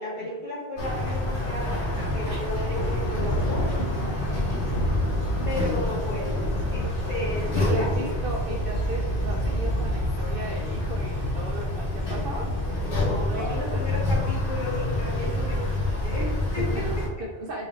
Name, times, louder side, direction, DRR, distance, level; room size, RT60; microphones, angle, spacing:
voice 1, 0.0-1.8 2.1-3.7 5.4-8.1 12.5-16.8, left 1 dB, 45° left, -7 dB, 1.6 m, -34 dB
sound 1, 0.8-17.1, left 1 dB, 80° left, 1.9 m, -27 dB
sound 2, 2.7-12.7, equal, 60° left, 0.9 m, -33 dB
voice 2, 4.0-4.6 7.5-12.5 13.3-14.0 16.6-17.7, right 1 dB, 60° right, -1 dB, 0.7 m, -36 dB
5.1 x 3.2 x 2.4 m, 1.1 s
omnidirectional pair, 1.1 m